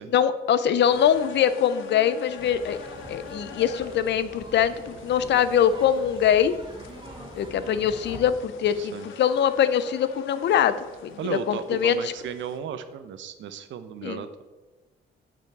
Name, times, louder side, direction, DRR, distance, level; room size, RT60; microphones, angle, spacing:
voice 1, 0.1-2.8 3.1-6.5 7.4-10.7 11.0-12.1 14.0-14.2, left 9 dB, 65° left, 13 dB, 0.5 m, -23 dB
sound 1, 0.9-12.6, left 4 dB, 85° left, 0.9 m, -44 dB
sound 2, 2.4-8.3, right 1 dB, 25° right, 1.6 m, -43 dB
voice 2, 8.8-9.1 11.2-14.4, right 8 dB, 70° right, 11 dB, 0.7 m, -35 dB
7.0 x 5.7 x 4.6 m, 1.2 s
cardioid pair, 90°, 20 cm